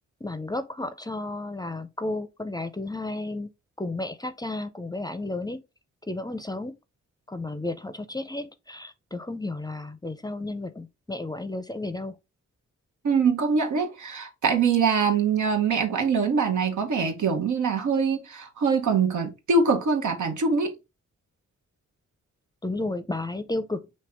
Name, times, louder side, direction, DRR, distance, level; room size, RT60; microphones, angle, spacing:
voice 1, 0.2-3.5 3.8-5.6 6.1-6.7 7.3-12.2 22.6-23.9, left 2 dB, 15° left, 0.5 m, -32 dB
voice 2, 13.0-20.7, right 5 dB, 90° right, 1.0 m, -23 dB
5.2 x 2.7 x 3.3 m
cardioid pair, 75°, 29 cm